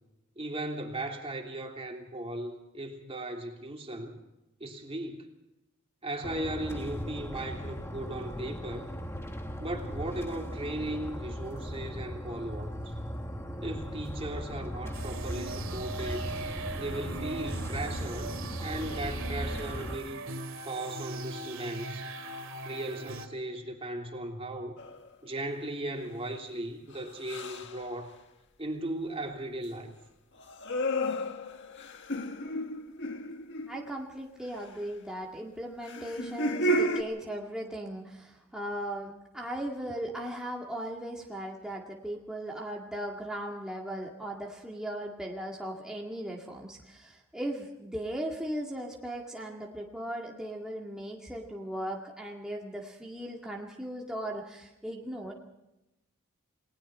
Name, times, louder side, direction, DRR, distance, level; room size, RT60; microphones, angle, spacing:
voice 1, 0.4-4.2 4.6-5.3 6.0-8.9 9.6-12.9 13.6-16.3 16.8-18.3 18.6-20.2 20.6-22.0 22.6-24.8 25.2-28.1 28.6-30.0, right 1 dB, 30° right, 2 dB, 3.1 m, -37 dB
sound 1, 6.2-19.9, equal, 10° left, 1.7 m, -38 dB
sound 2, 14.9-23.3, right 3 dB, 65° right, 2.4 m, -40 dB
sound 3, 24.8-25.1 27.2-27.8 30.4-34.0 35.8-37.0, equal, 60° left, 1.7 m, -32 dB
voice 2, 33.7-55.3, right 1 dB, 5° right, -2 dB, 2.1 m, -38 dB
29.5 x 20.5 x 4.4 m, 0.93 s
head